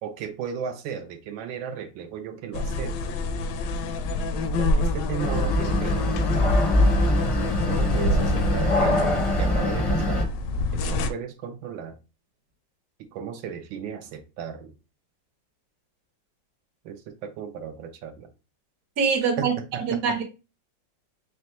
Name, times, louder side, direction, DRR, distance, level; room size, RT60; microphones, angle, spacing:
voice 1, 0.0-3.2 4.6-6.6 7.7-10.3 10.7-12.0 13.1-14.7 16.8-18.3 19.4-20.0, right 7 dB, 90° right, 1.4 m, -35 dB
sound 1, 2.5-11.1, left 2 dB, 75° left, 1.2 m, -27 dB
sound 2, 5.2-10.2, left 1 dB, 40° left, 0.4 m, -23 dB
voice 2, 19.0-20.2, right 5 dB, 55° right, 1.2 m, -24 dB
4.2 x 3.2 x 2.9 m
omnidirectional pair, 2.1 m